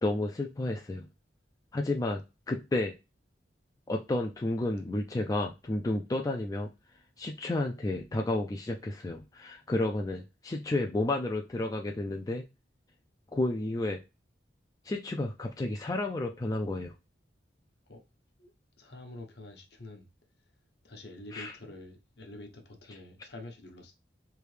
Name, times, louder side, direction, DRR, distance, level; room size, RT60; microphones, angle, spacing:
voice 1, 0.0-1.1 1.7-2.2 2.5-2.9 3.9-6.7 7.2-12.4 13.3-14.0 14.8-16.9 21.3-21.5, left 2 dB, 20° left, 0.3 m, -31 dB
voice 2, 18.4-20.1 20.8-23.9, left 1 dB, 65° left, 0.9 m, -47 dB
3.3 x 2.7 x 3.2 m
head